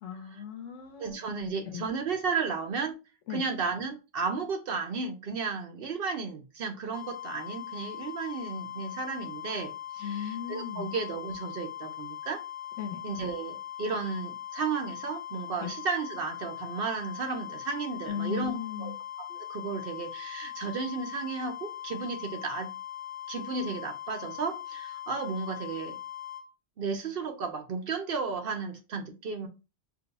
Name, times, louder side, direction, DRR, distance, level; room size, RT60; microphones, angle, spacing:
voice 1, 0.0-1.9 3.3-3.4 10.0-10.9 12.8-13.0 15.6-15.7 18.1-19.0, left 7 dB, 85° left, 1.1 m, -37 dB
voice 2, 1.0-3.0 3.3-12.4 13.0-18.9 19.3-22.7 23.3-26.0 26.8-29.5, right 4 dB, 60° right, 0.7 m, -34 dB
sound 1, 6.9-26.4, left 11 dB, 45° left, 1.1 m, -41 dB
2.6 x 2.2 x 3.9 m
omnidirectional pair, 1.2 m